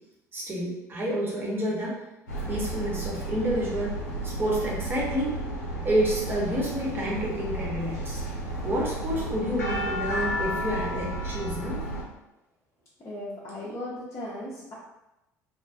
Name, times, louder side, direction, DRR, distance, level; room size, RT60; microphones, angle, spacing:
voice 1, 0.3-2.0 2.5-5.4 5.8-8.2 8.6-11.8 13.6-13.7, equal, 25° right, -4 dB, 0.9 m, -29 dB
sound 1, 2.3-12.0, right 1 dB, 85° left, 0.6 m, -32 dB
voice 2, 13.0-14.7, left 1 dB, 35° left, -7 dB, 0.6 m, -37 dB
2.4 x 2.2 x 2.5 m, 0.94 s
figure-of-eight pair, 60°, 9 cm